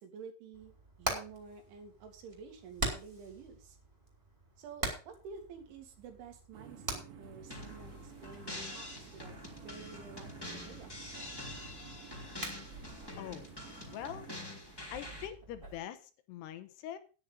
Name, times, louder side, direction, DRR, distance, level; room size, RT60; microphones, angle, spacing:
voice 1, 0.0-0.7 1.0-3.8 4.6-9.3 9.6-11.1, right 5 dB, 80° right, 5 dB, 4.7 m, -50 dB
Hammer, 0.5-15.8, right 2 dB, 15° right, 2.7 m, -44 dB
sound 1, 6.5-14.4, right 6 dB, 50° right, 2.9 m, -53 dB
sound 2, 7.5-15.3, left 1 dB, 5° left, 2.3 m, -46 dB
voice 2, 13.2-13.5 13.9-14.3 14.9-17.0, left 11 dB, 75° left, 11 dB, 2.7 m, -43 dB
10.5 x 9.9 x 5.2 m, 0.35 s
omnidirectional pair, 5.4 m